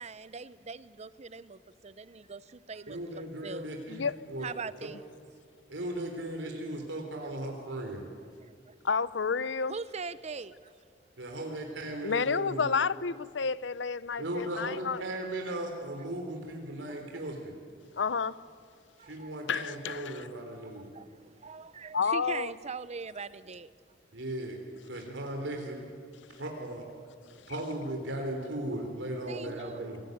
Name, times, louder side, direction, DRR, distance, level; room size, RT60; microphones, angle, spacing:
voice 1, 0.0-3.7 4.4-5.0 8.7-8.8 9.7-10.7 16.9-17.3 19.0-19.3 20.6-23.7 29.3-29.9, right 4 dB, 35° right, 0.7 m, -42 dB
voice 2, 2.9-4.5 4.8-4.9 5.7-8.0 11.2-12.7 14.2-17.5 19.0-20.9 24.1-24.6 24.8-25.9 26.3-26.8 27.5-30.0, right 1 dB, 80° right, 3.9 m, -37 dB
voice 3, 3.9-4.3 8.8-9.8 12.0-15.0 17.9-18.4 19.5-20.2 21.9-22.5, left 5 dB, 70° left, 0.7 m, -30 dB
27.5 x 19.0 x 9.4 m
head